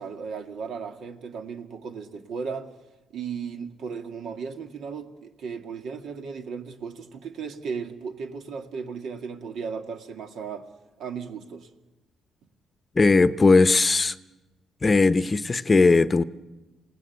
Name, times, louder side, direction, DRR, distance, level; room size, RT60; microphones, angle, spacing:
voice 1, 0.0-2.7 3.1-10.7 11.0-11.7, right 6 dB, 70° right, 2.1 m, -35 dB
voice 2, 12.9-14.2 14.8-16.2, left 3 dB, 30° left, 0.8 m, -18 dB
27.0 x 18.5 x 8.1 m
cardioid pair, 90°, 0 cm